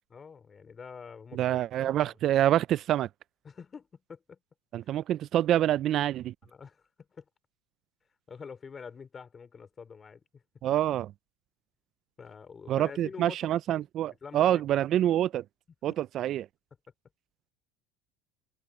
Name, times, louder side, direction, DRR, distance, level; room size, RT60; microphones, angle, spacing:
voice 1, 0.1-1.6 1.8-2.1 3.4-4.4 6.4-7.3 8.3-10.4 12.2-13.5 14.2-14.6 15.9-16.0, left 6 dB, 25° left, 3.4 m, -46 dB
voice 2, 1.3-3.1 4.7-6.3 10.6-11.1 12.7-15.4 15.8-16.5, right 12 dB, 50° right, 0.4 m, -26 dB
supercardioid pair, 105°, 0 cm